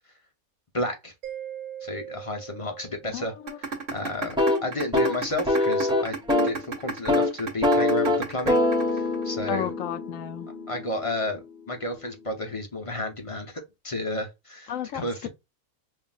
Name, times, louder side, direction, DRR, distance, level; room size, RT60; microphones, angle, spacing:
voice 1, 0.7-1.1 1.8-3.3 3.7-6.2 6.4-8.6 8.9-9.7 10.7-11.4 11.7-15.3, left 1 dB, 30° left, 0.7 m, -32 dB
Mallet percussion, 1.2-3.8, right 10 dB, 80° right, 1.6 m, -41 dB
voice 2, 3.1-3.6 9.5-10.5 14.7-15.3, left 10 dB, 70° left, 0.9 m, -33 dB
sound 1, 3.5-9.5, right 4 dB, 50° right, 1.5 m, -32 dB
sound 2, 4.2-6.6 6.9-7.3 7.6-11.5, left 2 dB, 5° right, 1.0 m, -25 dB
5.6 x 2.5 x 2.4 m
omnidirectional pair, 1.5 m